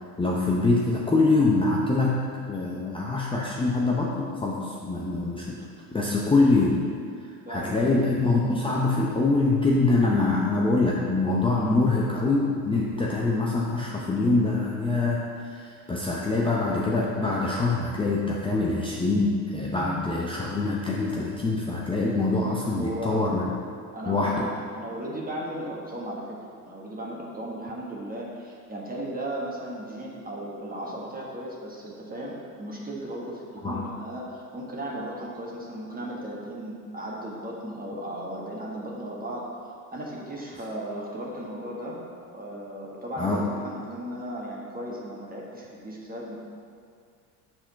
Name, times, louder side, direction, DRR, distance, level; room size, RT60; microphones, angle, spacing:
voice 1, 0.2-5.6 5.9-6.8 7.5-23.4 24.1-24.5 33.6-33.8 43.2-43.4, left 3 dB, 10° left, -4 dB, 0.7 m, -24 dB
voice 2, 7.5-7.9 11.5-11.8 22.6-23.2 23.9-26.2 26.7-39.5 39.9-42.0 42.3-46.4, right 1 dB, 20° right, -4 dB, 1.5 m, -36 dB
5.8 x 4.4 x 5.7 m, 2.2 s
hypercardioid pair, 75°, 46 cm